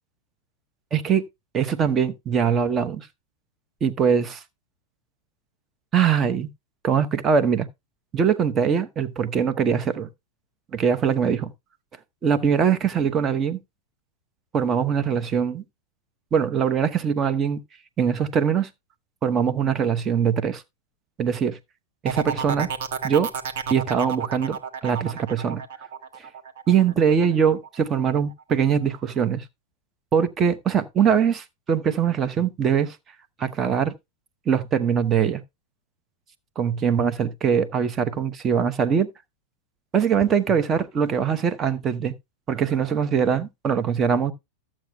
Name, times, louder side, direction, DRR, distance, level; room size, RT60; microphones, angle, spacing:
voice 1, 0.9-1.2 1.5-3.1 3.8-4.4 5.9-6.5 6.8-7.7 8.1-10.1 10.7-11.5 12.2-13.6 14.5-15.6 16.3-17.6 18.0-18.7 19.2-20.6 21.2-21.6 22.0-22.7 23.0-23.3 23.7-25.6 26.7-29.4 30.1-33.0 33.4-33.9 34.5-35.4 36.6-39.1 39.9-42.1 42.5-44.3, right 7 dB, 25° right, 1.0 m, -22 dB
sound 1, 22.1-27.7 28.1-28.5, right 6 dB, 55° right, 1.4 m, -31 dB
14.0 x 7.5 x 2.3 m
figure-of-eight pair, 90°, 0 cm